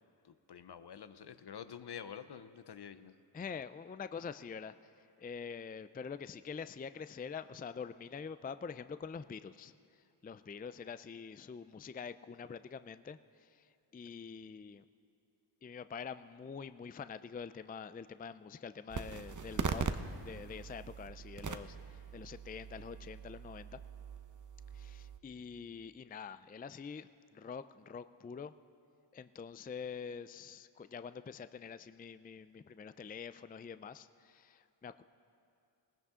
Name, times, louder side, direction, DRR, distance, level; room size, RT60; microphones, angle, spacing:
voice 1, 0.2-3.2, left 8 dB, 65° left, 12 dB, 0.7 m, -48 dB
voice 2, 3.3-4.8 5.2-9.7 10.2-14.8 15.6-19.9 20.2-23.8 24.7-27.1 27.3-28.5 29.1-35.0, left 6 dB, 20° left, 13 dB, 0.4 m, -45 dB
sound 1, 18.9-25.2, right 5 dB, 45° right, 0.8 m, -41 dB
20.0 x 17.5 x 3.7 m, 2.5 s
cardioid pair, 55°, 44 cm